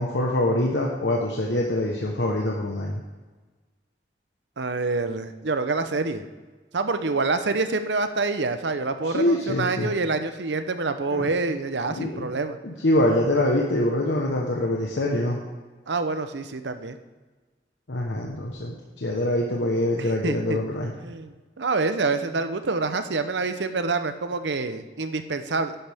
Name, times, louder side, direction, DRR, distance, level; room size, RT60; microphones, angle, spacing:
voice 1, 0.0-3.0 9.0-9.9 11.1-11.3 11.9-12.3 12.6-15.4 17.9-20.9, left 1 dB, 85° left, -1 dB, 1.2 m, -24 dB
voice 2, 4.6-6.3 6.7-12.6 15.9-17.0 20.0-20.6 21.0-25.7, right 3 dB, 85° right, 9 dB, 0.8 m, -27 dB
11.0 x 10.0 x 3.6 m, 1.3 s
head